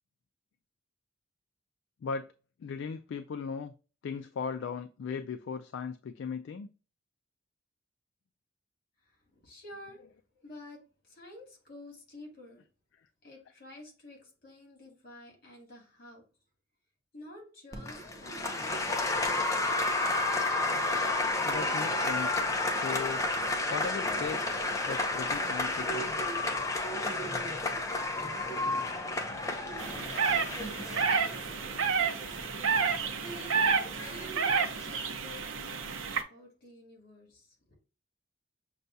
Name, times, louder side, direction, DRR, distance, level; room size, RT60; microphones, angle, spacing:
voice 1, 2.6-3.7 4.0-6.7 21.4-22.4 22.7-23.2 23.7-24.6 24.9-26.1, left 6 dB, 70° left, 0.3 m, -37 dB
voice 2, 9.3-10.0 10.4-12.6 13.2-16.2 17.1-19.4 29.4-30.1 30.8-33.1 33.6-37.6, left 1 dB, 50° left, 2.0 m, -51 dB
Applause, 17.7-34.9, left 2 dB, 15° left, 0.6 m, -32 dB
sound 1, 29.8-36.2, right 5 dB, 90° right, 0.6 m, -30 dB
6.5 x 2.3 x 2.6 m
head